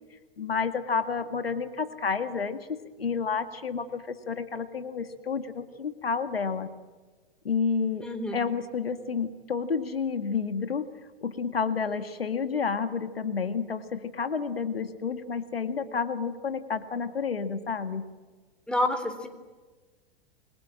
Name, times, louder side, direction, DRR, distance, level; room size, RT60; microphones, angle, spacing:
voice 1, 0.4-6.7 7.4-8.1 8.3-10.9 11.2-18.0, left 5 dB, 85° left, 9 dB, 2.1 m, -30 dB
voice 2, 8.0-8.3 18.7-19.3, left 1 dB, 5° left, 8 dB, 3.7 m, -28 dB
29.5 x 23.0 x 7.6 m, 1.3 s
hypercardioid pair, 105°, 29 cm